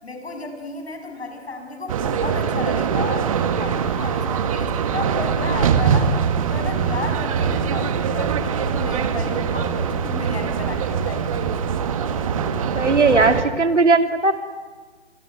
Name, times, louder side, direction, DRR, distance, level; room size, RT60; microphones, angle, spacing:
voice 1, 0.0-6.2 6.5-11.5, left 3 dB, 65° left, 5 dB, 7.1 m, -33 dB
sound 1, 1.9-13.4, right 7 dB, 30° right, 1.6 m, -23 dB
Singing, 2.8-13.2, right 6 dB, 15° right, 4.5 m, -35 dB
voice 2, 12.7-14.3, right 3 dB, 85° right, 7 dB, 2.8 m, -17 dB
27.5 x 21.5 x 9.4 m, 1.4 s
figure-of-eight pair, 150°, 35 cm